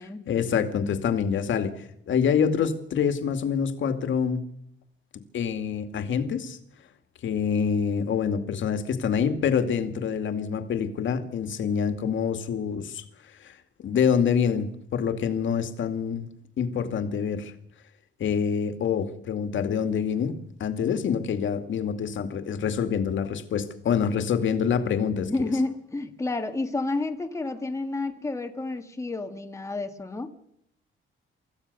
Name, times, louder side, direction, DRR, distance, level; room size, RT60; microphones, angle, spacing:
voice 1, 0.3-1.7 2.1-4.5 5.3-6.6 7.2-13.0 13.4-13.5 13.8-16.3 16.6-17.5 18.2-25.3, left 7 dB, 65° left, 8 dB, 2.4 m, -26 dB
voice 2, 25.1-30.3, left 2 dB, 15° left, 5 dB, 1.8 m, -30 dB
25.0 x 15.0 x 6.9 m, 0.74 s
cardioid pair, 140°, 21 cm